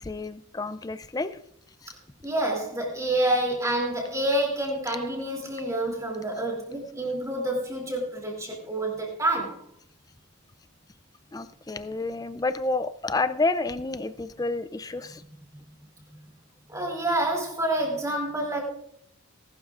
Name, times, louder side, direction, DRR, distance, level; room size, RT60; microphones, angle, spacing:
voice 1, 0.0-1.4 1.8-1.9 11.3-15.2, left 3 dB, 15° left, 12 dB, 0.4 m, -29 dB
voice 2, 2.2-9.6 16.7-18.6, right 1 dB, 15° right, -2 dB, 2.9 m, -28 dB
19.5 x 12.0 x 2.5 m, 0.72 s
head